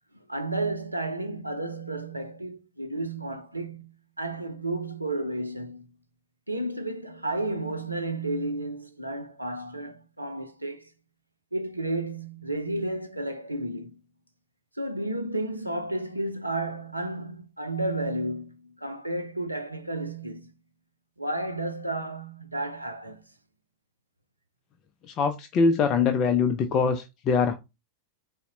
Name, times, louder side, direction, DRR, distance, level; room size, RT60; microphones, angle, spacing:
voice 1, 0.1-6.0 6.5-10.9 11.5-14.0 14.7-20.5 21.2-23.3, right 2 dB, 85° right, 0.5 m, -32 dB
voice 2, 25.1-27.5, left 5 dB, 35° left, 0.4 m, -23 dB
4.0 x 2.1 x 3.8 m
figure-of-eight pair, 90°, 0 cm